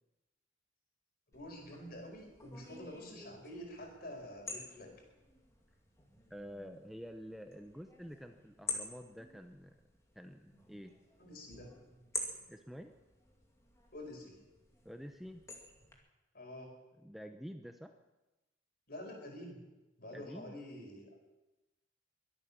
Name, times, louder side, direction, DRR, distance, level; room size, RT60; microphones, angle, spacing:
voice 1, 1.3-4.9 11.2-11.7 13.9-14.4 16.3-16.7 18.9-19.7 20.0-21.2, left 1 dB, 55° left, 2 dB, 4.8 m, -48 dB
sound 1, 1.3-15.9, left 2 dB, 15° left, 2.4 m, -49 dB
voice 2, 6.3-9.8 10.1-10.9 12.5-12.9 14.8-15.4 17.0-17.9 20.1-20.5, equal, ahead, 6 dB, 0.7 m, -48 dB
22.5 x 8.8 x 7.2 m, 1.0 s
head